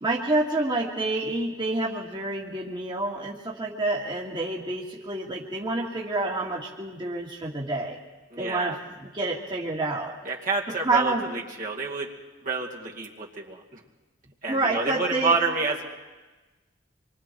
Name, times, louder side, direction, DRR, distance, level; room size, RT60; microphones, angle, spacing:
voice 1, 0.0-8.0 8.4-8.8 9.0-10.1 10.8-11.3 14.5-15.3, right 2 dB, 25° right, -2 dB, 2.3 m, -28 dB
voice 2, 8.3-8.8 10.2-12.1 12.4-13.8 14.4-15.9, right 4 dB, 45° right, -2 dB, 2.5 m, -28 dB
26.5 x 23.5 x 4.6 m, 1.2 s
head